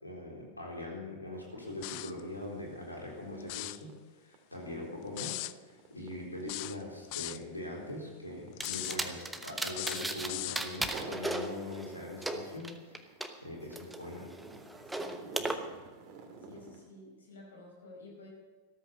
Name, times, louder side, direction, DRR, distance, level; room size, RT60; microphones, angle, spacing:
voice 1, 0.0-3.9 4.2-13.1 13.4-14.3, left 1 dB, 85° left, -1 dB, 4.0 m, -42 dB
sound 1, 1.3-1.5 1.8-10.3 10.7-11.3 11.7-16.9, right 4 dB, 40° right, 2.2 m, -51 dB
sound 2, 1.8-2.2 3.4-3.8 5.2-5.5 6.5-7.4 8.6-9.0 9.7-10.6, left 21 dB, 45° left, 0.4 m, -38 dB
sound 3, 8.6-10.3 10.5-13.3 13.7-15.5, right 1 dB, 5° right, 1.1 m, -36 dB
voice 2, 14.8-15.5 16.4-18.3, left 2 dB, 70° left, 0 dB, 5.2 m, -52 dB
13.5 x 13.5 x 5.5 m, 1.3 s
figure-of-eight pair, 90°, 0 cm